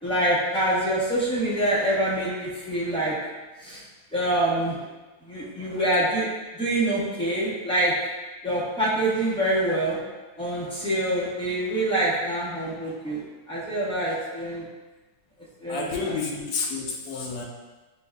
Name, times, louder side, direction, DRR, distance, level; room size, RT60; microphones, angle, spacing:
voice 1, 0.0-3.1 3.6-3.8 4.1-4.9 5.3-6.3 6.6-7.9 8.4-10.0 10.4-14.6 15.6-16.1, right 1 dB, 5° left, -8 dB, 0.5 m, -25 dB
voice 2, 15.7-17.4, left 4 dB, 75° left, 0 dB, 1.2 m, -30 dB
6.6 x 2.4 x 2.2 m, 1.2 s
omnidirectional pair, 1.8 m